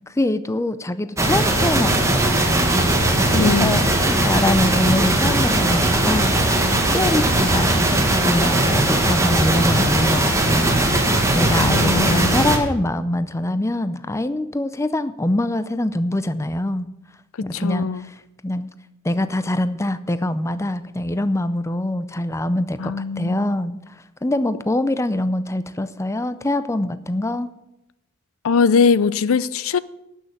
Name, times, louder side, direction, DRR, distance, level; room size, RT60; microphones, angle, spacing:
voice 1, 0.1-3.0 3.3-6.6 6.9-16.9 17.4-18.1 18.4-18.7 19.0-23.9 24.2-27.5, left 1 dB, 15° left, 0.5 m, -24 dB
sound 1, 1.2-12.6, right 1 dB, 15° right, 1.5 m, -19 dB
voice 2, 3.3-3.9 11.6-12.4 17.5-18.1 22.8-23.5 28.4-29.8, left 5 dB, 70° left, 0.5 m, -21 dB
12.5 x 6.5 x 9.4 m
head